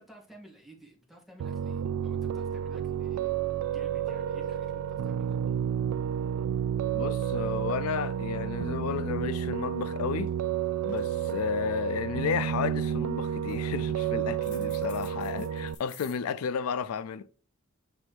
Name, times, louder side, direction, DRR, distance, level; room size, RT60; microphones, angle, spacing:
voice 1, 0.0-3.3 3.7-5.4, right 1 dB, ahead, 1.3 m, -53 dB
Piano, 1.4-15.7, right 9 dB, 85° right, 0.3 m, -31 dB
voice 2, 6.9-10.3 10.8-17.3, left 6 dB, 90° left, 0.4 m, -32 dB
sound 1, 10.3-10.5 10.8-11.6 12.0-12.5 13.3-13.9 14.4-16.2, left 7 dB, 55° left, 1.2 m, -52 dB
7.7 x 3.2 x 4.6 m
head